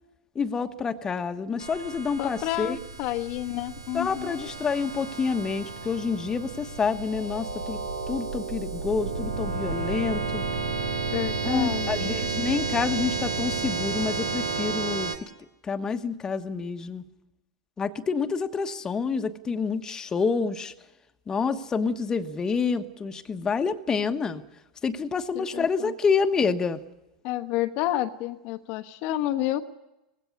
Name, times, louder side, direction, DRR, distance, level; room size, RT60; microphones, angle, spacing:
voice 1, 0.3-2.8 3.9-7.8 8.1-10.4 11.4-15.3 15.6-17.0 17.8-20.7 21.3-24.4 24.8-26.8, left 5 dB, 20° left, 8 dB, 1.2 m, -28 dB
sound 1, 1.6-15.2, right 4 dB, 80° right, 1.9 m, -32 dB
voice 2, 2.2-4.5 11.1-12.2 25.3-25.9 27.2-29.6, left 14 dB, 50° left, 8 dB, 1.1 m, -30 dB
18.5 x 16.5 x 9.6 m, 0.96 s
hypercardioid pair, 90°, 3 cm